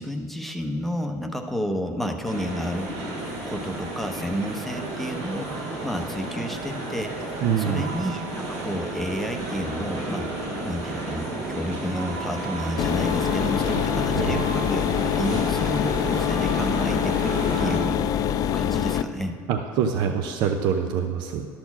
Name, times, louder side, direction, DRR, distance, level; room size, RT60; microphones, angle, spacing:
voice 1, 0.0-2.9 3.4-10.3 10.6-14.8 15.1-19.4, equal, ahead, 4 dB, 0.7 m, -31 dB
sound 1, 2.2-17.8, right 2 dB, 90° right, 2.4 m, -32 dB
voice 2, 7.4-7.9 14.1-14.4 19.5-21.5, right 7 dB, 65° right, 6 dB, 0.6 m, -25 dB
sound 2, 12.8-19.0, left 9 dB, 50° left, 0.4 m, -24 dB
12.0 x 4.4 x 7.1 m, 2.3 s
supercardioid pair, 100°, 8 cm